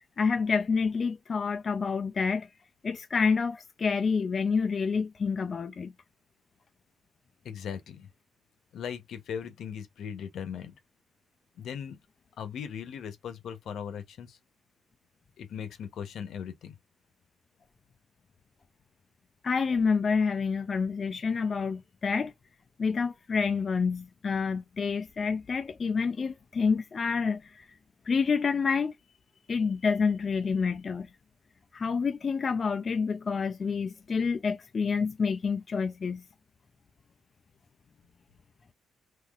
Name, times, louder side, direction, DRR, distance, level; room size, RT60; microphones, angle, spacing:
voice 1, 0.2-2.5 2.8-5.9 19.4-22.3 22.8-27.7 28.1-28.9 29.5-31.1 31.7-36.2, left 5 dB, 40° left, 0.3 m, -28 dB
voice 2, 7.4-8.1 8.7-10.7 11.6-12.0 12.4-14.4 15.4-16.7, left 8 dB, 70° left, 0.8 m, -38 dB
3.9 x 2.7 x 2.4 m
cardioid pair, 90°, 0 cm